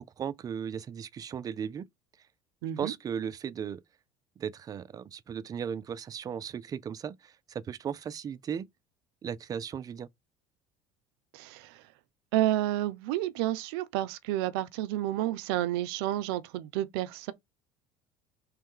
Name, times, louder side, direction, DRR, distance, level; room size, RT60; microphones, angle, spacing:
voice 1, 0.0-1.9 2.8-3.8 4.4-8.7 9.2-10.1, right 8 dB, 30° right, 0.3 m, -36 dB
voice 2, 2.6-2.9 11.3-11.8 12.3-17.3, right 14 dB, 85° right, 0.5 m, -30 dB
3.1 x 3.1 x 3.7 m
supercardioid pair, 105°, 12 cm